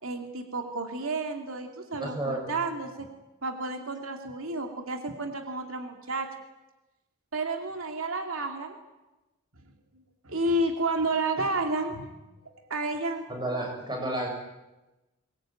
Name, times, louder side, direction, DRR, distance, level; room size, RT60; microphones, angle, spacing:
voice 1, 0.0-3.1 3.4-6.3 7.3-8.7 10.2-12.1 12.4-13.2, right 2 dB, 80° right, 4 dB, 2.5 m, -31 dB
voice 2, 2.0-2.5 13.3-14.3, right 1 dB, 20° right, 1 dB, 7.0 m, -31 dB
23.5 x 20.5 x 9.0 m, 1.0 s
head